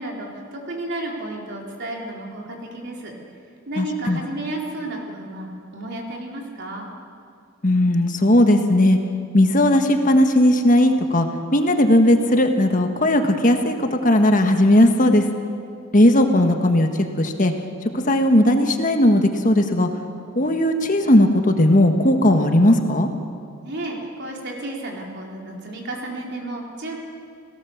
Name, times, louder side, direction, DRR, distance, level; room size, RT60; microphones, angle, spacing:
voice 1, 0.0-3.1 3.7-6.9 23.6-27.0, right 1 dB, 55° right, -1 dB, 4.2 m, -32 dB
voice 2, 3.8-4.2 7.6-9.0 9.3-11.3 11.5-15.2 15.9-16.9 17.2-17.5 17.9-19.9 20.3-23.1, left 1 dB, 40° left, 5 dB, 1.5 m, -17 dB
30.0 x 18.0 x 7.3 m, 2.3 s
head